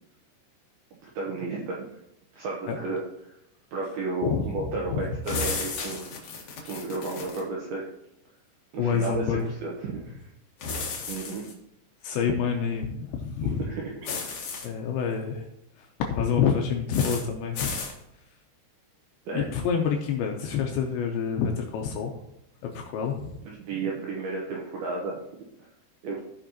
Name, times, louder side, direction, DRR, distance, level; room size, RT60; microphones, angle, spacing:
voice 1, 1.2-1.8 2.3-3.3 3.7-6.1 6.6-7.9 8.7-10.3 11.1-11.5 12.0-12.1 13.4-13.8 19.3-19.5 23.5-25.2 26.0-26.2, right 3 dB, 75° right, -2 dB, 2.3 m, -33 dB
voice 2, 4.2-5.0 8.8-9.4 12.0-13.6 14.6-15.5 15.8-17.7 19.3-22.2 22.7-23.3, left 7 dB, 80° left, 2 dB, 2.7 m, -27 dB
sound 1, 5.2-7.4 10.6-11.5 14.0-14.7 16.9-17.2 17.5-17.9, left 4 dB, 65° left, 2.0 m, -33 dB
16.5 x 5.5 x 2.9 m, 0.82 s
omnidirectional pair, 5.9 m